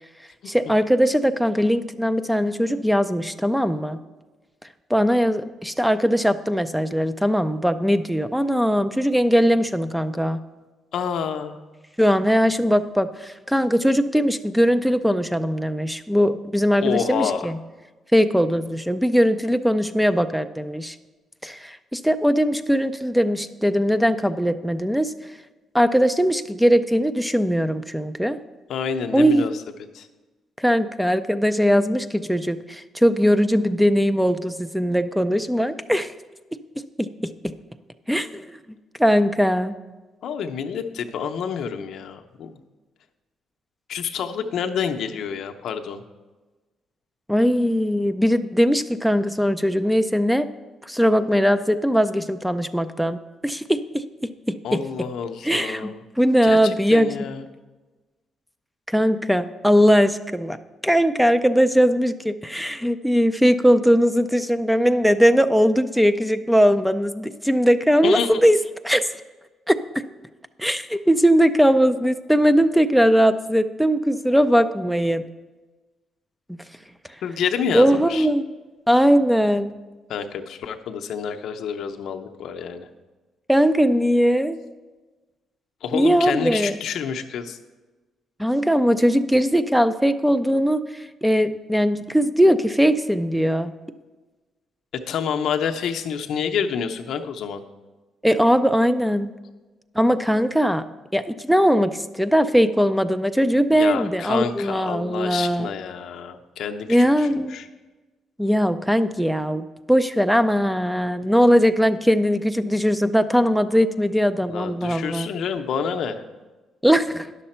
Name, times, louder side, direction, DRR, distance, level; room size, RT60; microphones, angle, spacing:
voice 1, 0.5-4.0 4.9-10.4 12.0-17.6 18.1-21.0 21.4-25.1 25.7-28.4 29.1-29.5 30.6-36.1 37.0-37.5 38.1-38.6 39.0-39.7 47.3-50.5 50.8-53.2 53.4-54.8 55.4-57.3 58.9-60.6 60.8-68.6 68.8-69.1 69.7-70.0 70.6-75.2 76.5-76.6 77.7-78.5 78.9-79.7 83.5-84.6 85.9-86.8 88.4-93.7 98.2-99.3 100.0-100.8 101.1-105.7 106.9-107.6 108.4-115.3 116.8-117.3, equal, ahead, 11 dB, 0.4 m, -20 dB
voice 2, 10.9-11.6 16.8-17.5 28.7-29.5 29.9-30.1 40.2-42.6 43.9-46.0 54.6-56.0 56.4-57.4 68.0-68.4 77.2-78.3 80.1-82.9 85.8-87.6 95.1-97.6 103.7-107.6 114.5-116.2, left 7 dB, 75° left, 5 dB, 0.6 m, -28 dB
9.9 x 6.6 x 4.3 m, 1.2 s
cardioid pair, 90°, 0 cm